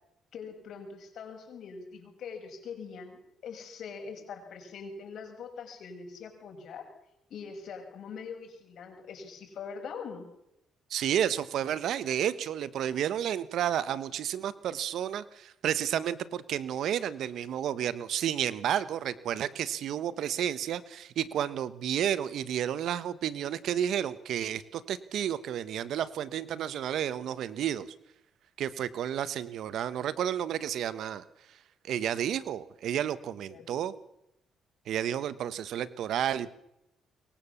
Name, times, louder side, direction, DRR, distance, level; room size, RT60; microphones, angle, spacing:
voice 1, 0.3-6.9 7.3-10.3 33.5-33.7, left 5 dB, 65° left, 5 dB, 6.0 m, -43 dB
voice 2, 10.9-27.9 28.6-31.2 31.8-34.0 34.9-36.5, right 10 dB, 70° right, 16 dB, 1.2 m, -31 dB
25.0 x 22.5 x 7.1 m, 0.83 s
cardioid pair, 80°, 0 cm